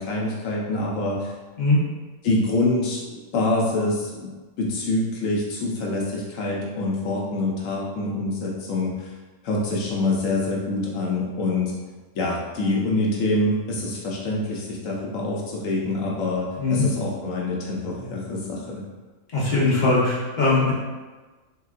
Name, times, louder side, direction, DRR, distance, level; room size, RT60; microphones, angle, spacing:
voice 1, 0.0-1.3 2.2-9.1 9.4-11.7 12.1-18.8, left 2 dB, 80° left, -3 dB, 1.1 m, -26 dB
voice 2, 19.3-20.7, left 3 dB, 40° left, -7 dB, 1.0 m, -20 dB
3.7 x 3.6 x 2.4 m, 1.3 s
omnidirectional pair, 1.3 m